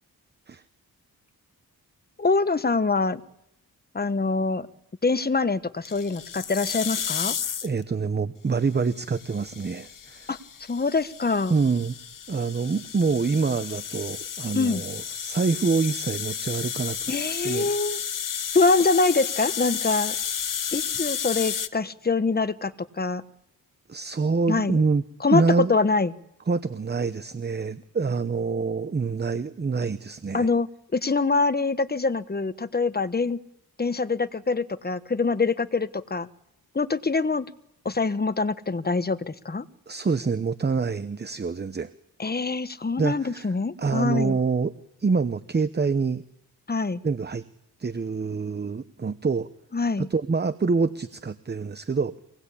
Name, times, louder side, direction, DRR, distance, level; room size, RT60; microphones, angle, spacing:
voice 1, 2.2-3.2 3.9-4.7 5.0-7.3 10.3-10.4 10.7-11.6 14.5-14.8 17.1-18.0 18.5-20.1 20.7-23.2 24.5-24.8 25.2-26.1 30.3-33.4 33.8-36.3 36.7-37.5 37.8-39.6 42.2-44.4 46.7-47.0 49.7-50.1, left 3 dB, 25° left, 12 dB, 1.2 m, -24 dB
sound 1, 5.8-7.8 8.9-21.7, left 8 dB, 60° left, 1.2 m, -32 dB
voice 2, 7.6-10.3 11.5-11.9 12.3-17.7 23.9-25.0 25.3-25.7 26.5-30.5 39.9-41.9 43.0-43.5 43.8-44.7 45.0-46.2 47.0-47.4 47.8-49.5 50.0-52.1, right 4 dB, 30° right, 13 dB, 0.9 m, -26 dB
24.5 x 19.0 x 8.4 m, 0.81 s
cardioid pair, 65°, 36 cm